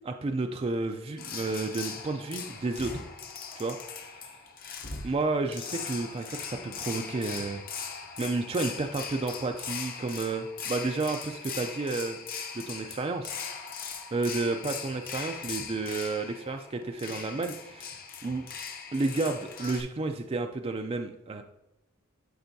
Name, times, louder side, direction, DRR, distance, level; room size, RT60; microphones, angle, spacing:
voice 1, 0.0-3.0 3.6-3.8 4.1-4.3 5.0-7.6 8.2-12.2 12.5-13.4 14.1-18.5 18.9-21.4, right 3 dB, 30° right, 5 dB, 0.4 m, -31 dB
sound 1, 1.2-19.8, left 6 dB, 45° left, 0.8 m, -40 dB
11.5 x 4.3 x 2.7 m, 0.95 s
head